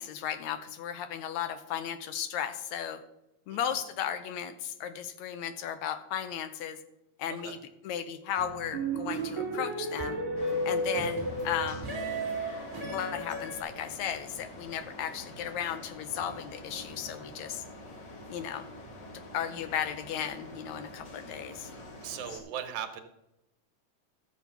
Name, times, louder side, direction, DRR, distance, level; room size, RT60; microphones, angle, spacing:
voice 1, 0.0-3.0 3.5-6.8 7.2-7.6 7.8-10.2 10.7-11.9 12.8-17.6 18.3-18.7 19.3-21.7, left 9 dB, 80° left, 10 dB, 1.8 m, -35 dB
sound 1, 8.4-13.6, right 1 dB, 25° right, 1.6 m, -33 dB
sound 2, 10.4-22.4, left 1 dB, 40° left, 2.1 m, -47 dB
voice 2, 22.0-23.0, right 9 dB, 75° right, 8 dB, 2.3 m, -38 dB
13.0 x 7.3 x 5.7 m, 0.89 s
omnidirectional pair, 3.5 m